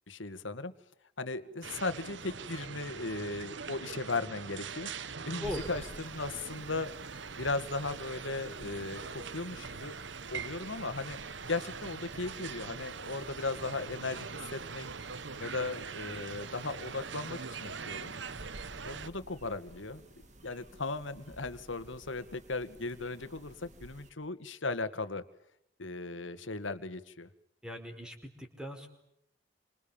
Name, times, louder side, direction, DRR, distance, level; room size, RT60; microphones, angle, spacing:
voice 1, 0.1-0.7 1.2-6.9 7.4-9.9 10.3-11.2 11.5-14.9 15.4-18.1 18.8-20.0 20.4-25.2 25.8-27.3, left 3 dB, 80° left, 11 dB, 2.0 m, -37 dB
sound 1, 1.6-19.1, right 5 dB, 70° right, 1.1 m, -42 dB
voice 2, 5.4-5.7 27.6-28.9, left 1 dB, 5° right, 4 dB, 4.9 m, -40 dB
sound 2, 5.4-24.1, right 1 dB, 40° right, 3.1 m, -54 dB
29.5 x 26.0 x 7.3 m, 0.78 s
head